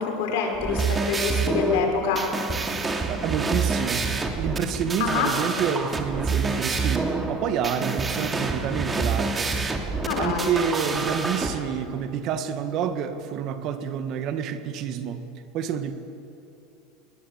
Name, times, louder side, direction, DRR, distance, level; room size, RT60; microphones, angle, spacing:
voice 1, 0.0-2.2 5.0-5.3 10.0-10.5, left 6 dB, 75° left, 3 dB, 5.3 m, -26 dB
sound 1, 0.5-11.5, right 4 dB, 20° right, 2.6 m, -27 dB
voice 2, 3.1-9.5 10.1-15.2 15.5-15.9, right 8 dB, 50° right, 9 dB, 1.7 m, -28 dB
21.5 x 19.5 x 8.3 m, 2.8 s
supercardioid pair, 115°, 0 cm